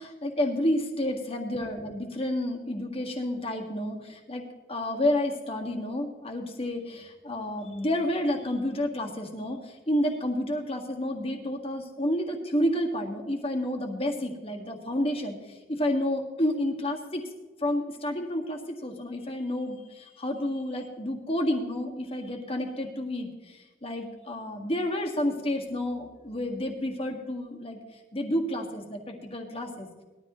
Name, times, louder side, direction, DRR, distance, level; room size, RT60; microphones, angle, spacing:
voice 1, 0.0-17.2 17.6-29.9, left 1 dB, 30° left, 2 dB, 1.8 m, -30 dB
20.0 x 13.0 x 3.1 m, 1.2 s
head